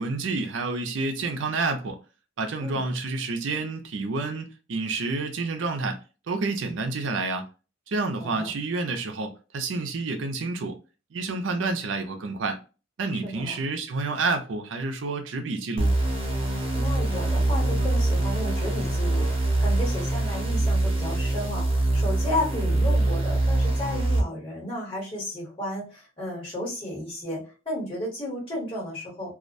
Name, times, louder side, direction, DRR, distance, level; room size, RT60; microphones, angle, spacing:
voice 1, 0.0-2.0 2.4-6.0 6.3-7.5 7.9-10.8 11.1-12.6 13.0-16.0, right 3 dB, 80° right, 0.5 m, -29 dB
voice 2, 8.1-8.5 13.1-13.6 16.7-29.4, left 1 dB, 30° left, 1.2 m, -33 dB
sound 1, 15.8-24.2, right 2 dB, 30° right, 0.7 m, -24 dB
2.3 x 2.1 x 2.5 m
head